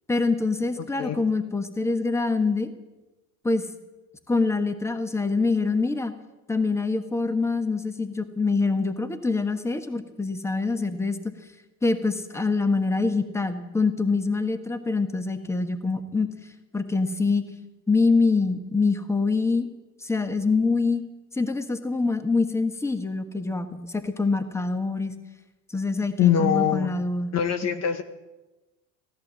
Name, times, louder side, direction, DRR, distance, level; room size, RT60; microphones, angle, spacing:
voice 1, 0.1-2.7 3.4-3.7 4.3-6.1 6.5-11.2 11.8-16.3 16.7-17.4 17.9-19.7 20.0-21.0 21.3-25.1 25.7-27.3, left 3 dB, 5° left, 9 dB, 1.3 m, -25 dB
voice 2, 0.8-1.2 26.2-26.9 27.3-28.0, left 9 dB, 35° left, 9 dB, 1.0 m, -23 dB
16.0 x 11.0 x 7.4 m, 1.1 s
supercardioid pair, 110°, 43 cm